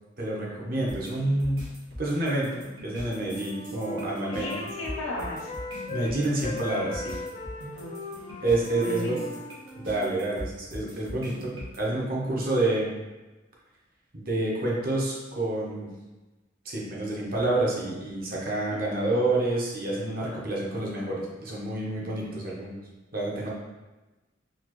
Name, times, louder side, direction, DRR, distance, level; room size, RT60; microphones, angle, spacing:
voice 1, 0.2-1.6 2.0-4.5 5.9-7.1 8.4-9.2 9.7-12.9 14.1-15.9 16.6-22.7 23.1-23.5, right 2 dB, 50° right, -4 dB, 0.8 m, -28 dB
sound 1, 0.9-11.8, equal, 85° right, 1.2 m, -41 dB
Wind instrument woodwind instrument, 3.0-6.1 6.4-10.2, left 2 dB, 25° left, 0.4 m, -39 dB
voice 2, 4.3-5.5 7.8-7.9 8.8-9.1 18.7-18.8, left 1 dB, 85° left, -4 dB, 0.9 m, -35 dB
4.0 x 2.5 x 3.0 m, 1.1 s
head